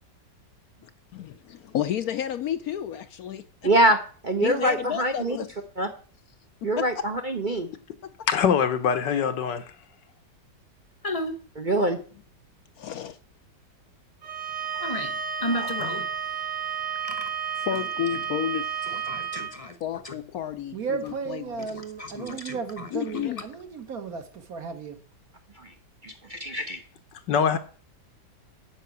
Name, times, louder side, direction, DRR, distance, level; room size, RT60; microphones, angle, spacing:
voice 1, 1.1-3.7 4.4-5.5 6.6-7.0 8.0-8.3 12.8-13.2 14.7-15.0 15.4-16.0 17.6-19.0 19.8-21.7 22.9-23.4 27.5-27.6, left 10 dB, 65° left, 1.0 m, -32 dB
voice 2, 3.6-4.0 4.2-5.4 5.8-5.9 6.6-7.7 11.6-12.0 25.6-25.7 26.0-26.8, right 1 dB, 35° right, 0.8 m, -24 dB
voice 3, 8.3-9.6 27.3-27.6, left 7 dB, 85° left, 1.8 m, -23 dB
voice 4, 11.0-11.4 14.8-15.1 15.4-16.1 17.1-17.3 18.9-19.8 20.0-20.1 21.7-22.9, left 1 dB, 25° left, 0.8 m, -33 dB
Bowed string instrument, 14.2-19.5, right 7 dB, 75° right, 2.3 m, -31 dB
voice 5, 20.7-25.0, right 5 dB, 55° right, 1.7 m, -34 dB
9.3 x 6.2 x 8.3 m
omnidirectional pair, 1.9 m